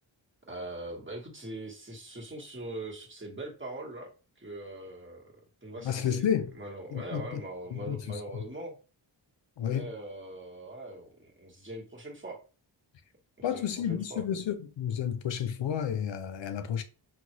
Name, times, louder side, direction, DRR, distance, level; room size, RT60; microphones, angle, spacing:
voice 1, 0.4-4.1 4.4-5.3 5.6-6.2 6.6-8.7 9.6-12.4 13.4-14.2, right 1 dB, 25° right, 1.2 m, -41 dB
voice 2, 5.8-6.5 6.9-7.4 7.7-8.2 9.6-9.9 13.4-16.8, left 9 dB, 65° left, 0.5 m, -31 dB
3.8 x 2.2 x 3.0 m
cardioid pair, 55°, 48 cm